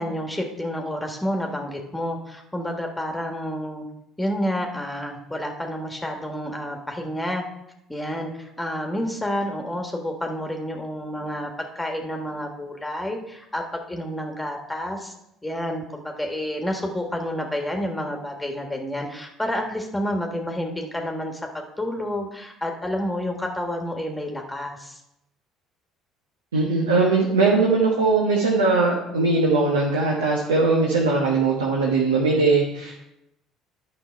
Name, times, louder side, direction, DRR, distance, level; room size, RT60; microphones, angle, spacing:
voice 1, 0.0-3.8 4.2-7.4 7.9-11.5 11.7-15.1 15.4-25.0, equal, 10° left, 2 dB, 1.5 m, -29 dB
voice 2, 26.5-32.9, right 3 dB, 85° right, -2 dB, 1.2 m, -20 dB
10.5 x 5.6 x 4.5 m, 0.85 s
figure-of-eight pair, 55°, 0 cm